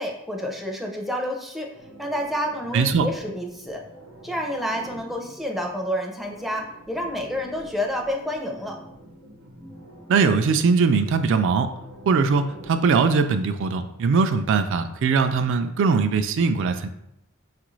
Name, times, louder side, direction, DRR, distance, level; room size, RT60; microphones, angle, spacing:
voice 1, 0.0-1.7 2.0-3.8 4.2-8.8, equal, ahead, 0 dB, 0.5 m, -29 dB
sound 1, 1.7-13.5, right 1 dB, 85° right, 0.8 m, -46 dB
voice 2, 2.7-3.1 10.1-11.7 12.1-16.9, right 5 dB, 60° right, 8 dB, 0.3 m, -21 dB
6.0 x 2.5 x 3.1 m, 0.82 s
head